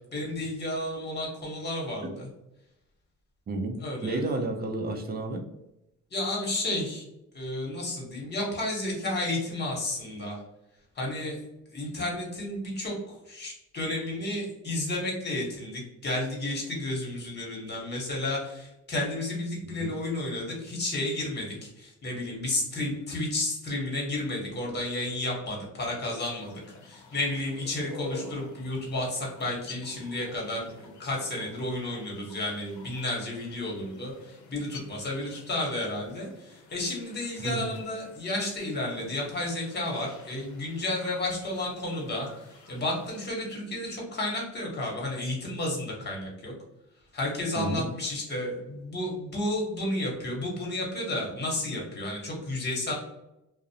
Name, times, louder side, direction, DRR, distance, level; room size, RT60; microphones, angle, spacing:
voice 1, 0.1-2.3 3.8-4.2 6.1-7.0 7.3-10.4 11.0-11.4 11.7-42.3 42.7-46.5 47.1-52.9, left 1 dB, 35° left, -1 dB, 1.1 m, -32 dB
voice 2, 3.5-5.4 19.8-19.9 37.4-37.7 47.6-47.9, right 2 dB, 30° right, 3 dB, 0.5 m, -31 dB
sound 1, 26.3-43.3, left 2 dB, 75° left, 0.6 m, -49 dB
2.4 x 2.0 x 2.7 m, 0.89 s
cardioid pair, 90°, 30 cm